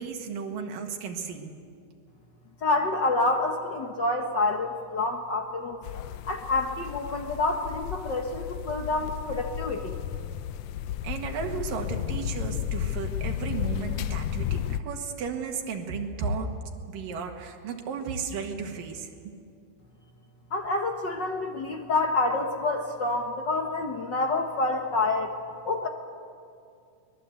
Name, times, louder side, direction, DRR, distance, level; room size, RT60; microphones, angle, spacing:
voice 1, 0.0-1.5 11.0-16.5 16.9-19.3, right 5 dB, 90° right, 3 dB, 3.3 m, -34 dB
voice 2, 2.6-5.8 6.2-10.0 20.5-25.4 25.6-25.9, left 2 dB, 60° left, 4 dB, 1.2 m, -28 dB
sound 1, 5.8-14.8, left 11 dB, 80° left, 1.5 m, -33 dB
24.0 x 20.5 x 8.2 m, 2.4 s
omnidirectional pair, 3.8 m